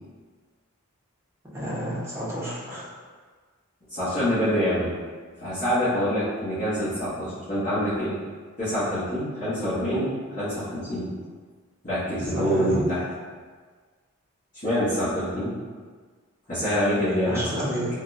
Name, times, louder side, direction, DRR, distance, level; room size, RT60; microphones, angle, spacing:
voice 1, 1.5-2.9 12.2-12.8 17.2-17.9, right 1 dB, 10° right, -9 dB, 0.8 m, -30 dB
voice 2, 3.9-4.9 5.4-8.1 8.6-11.1 11.8-13.0 14.6-15.5 16.5-17.7, equal, 35° left, -16 dB, 1.2 m, -26 dB
3.7 x 2.3 x 2.6 m, 1.5 s
head